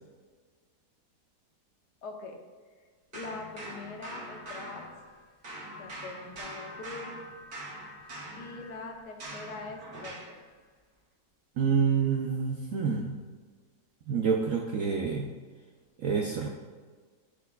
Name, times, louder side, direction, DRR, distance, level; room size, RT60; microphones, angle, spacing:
voice 1, 2.0-2.4 3.1-4.8 5.8-7.1 8.4-10.4, left 3 dB, 75° left, 2 dB, 1.5 m, -42 dB
sound 1, 3.1-5.2 5.4-10.4, right 1 dB, 50° right, 1.8 m, -43 dB
voice 2, 11.6-13.2 14.1-15.3 16.0-16.5, right 6 dB, 70° right, 1 dB, 0.8 m, -27 dB
12.0 x 4.5 x 2.3 m, 1.5 s
omnidirectional pair, 1.9 m